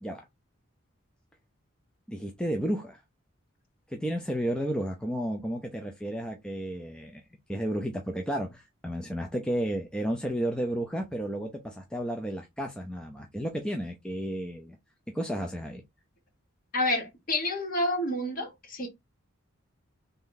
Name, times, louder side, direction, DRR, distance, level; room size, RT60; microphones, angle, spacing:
voice 1, 2.1-3.0 3.9-7.2 7.5-14.8 15.1-15.8, equal, 5° left, 0.4 m, -32 dB
voice 2, 16.7-18.9, left 1 dB, 40° left, 1.2 m, -29 dB
3.3 x 2.6 x 3.7 m
head